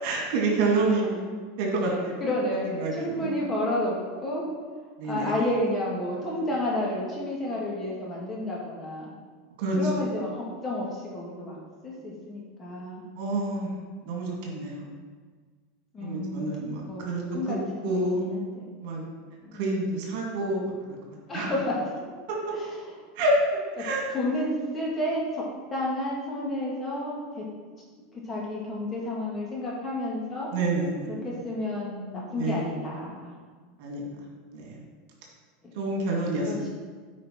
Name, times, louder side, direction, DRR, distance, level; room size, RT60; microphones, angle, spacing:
voice 1, 0.0-1.2 1.6-2.2 2.6-3.3 5.0-5.3 9.6-9.8 13.2-13.8 14.0-14.9 16.0-17.2 17.5-17.6 17.8-18.3 18.8-19.0 19.5-20.7 21.3-21.5 22.3-22.4 23.2-23.4 23.8-24.1 30.5-31.3 32.4-32.6 33.8-34.0 34.5-34.8 35.8-36.7, right 2 dB, 65° right, -1 dB, 2.3 m, -28 dB
voice 2, 2.2-4.0 4.2-4.4 5.0-9.1 9.8-11.6 11.8-13.0 15.9-16.5 16.9-18.7 19.4-19.6 21.3-21.8 23.8-23.9 24.1-27.5 28.1-30.5 31.1-33.3 35.6-35.8 36.4-36.7, left 1 dB, 20° left, -4 dB, 2.6 m, -31 dB
9.0 x 5.1 x 4.6 m, 1.5 s
supercardioid pair, 120°, 0 cm